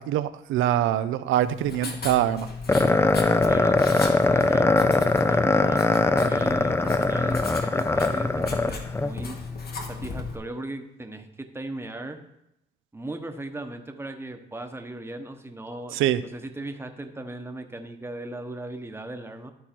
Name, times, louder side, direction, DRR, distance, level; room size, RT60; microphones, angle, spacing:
voice 1, 0.0-2.5 15.9-16.2, right 12 dB, 85° right, 14 dB, 0.5 m, -24 dB
Writing, 1.4-10.3, left 4 dB, 50° left, 1.5 m, -36 dB
sound 1, 2.7-9.1, left 2 dB, 10° left, 0.4 m, -21 dB
voice 2, 3.5-5.8 6.1-9.4 9.9-12.2 12.9-19.5, right 2 dB, 10° right, 6 dB, 1.0 m, -38 dB
12.5 x 4.3 x 4.4 m, 0.82 s
cardioid pair, 90°, 20 cm